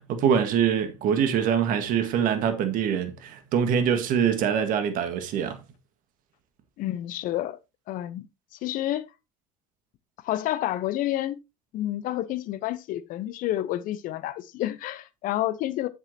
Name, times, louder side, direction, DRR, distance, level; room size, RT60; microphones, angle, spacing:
voice 1, 0.1-5.6, right 8 dB, 55° right, 1.9 m, -24 dB
voice 2, 6.8-7.6 7.9-8.3 8.6-9.1 10.2-11.4 11.7-15.9, left 13 dB, 55° left, 1.0 m, -29 dB
10.5 x 7.9 x 2.9 m
hypercardioid pair, 70°, 16 cm